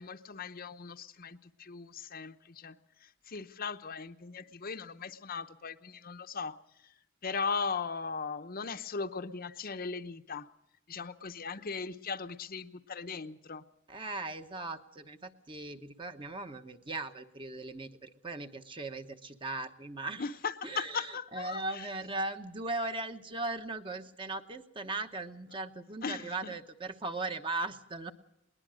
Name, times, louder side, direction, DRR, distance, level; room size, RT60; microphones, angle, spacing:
voice 1, 0.0-2.8 3.0-6.6 7.2-10.5 10.9-13.6 20.2-21.9 26.0-26.6, left 5 dB, 45° left, 9 dB, 0.8 m, -38 dB
voice 2, 13.9-20.2 20.6-28.1, right 2 dB, 25° right, 8 dB, 1.1 m, -38 dB
21.0 x 20.0 x 6.3 m, 0.82 s
head